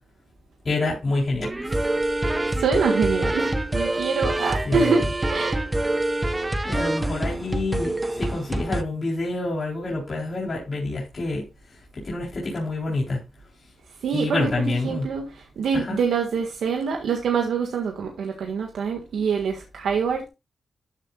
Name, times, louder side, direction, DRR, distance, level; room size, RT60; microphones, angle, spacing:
voice 1, 0.6-1.8 4.7-5.0 6.6-11.4 12.0-13.2 14.1-15.1 15.7-16.0, left 2 dB, 35° left, -4 dB, 3.7 m, -27 dB
sound 1, 1.4-8.8, right 1 dB, 15° right, 0.8 m, -25 dB
voice 2, 2.5-5.1 5.3-5.6 14.0-20.3, right 5 dB, 85° right, 2 dB, 1.7 m, -25 dB
13.0 x 7.7 x 2.4 m, 0.26 s
wide cardioid pair, 130°, 0 cm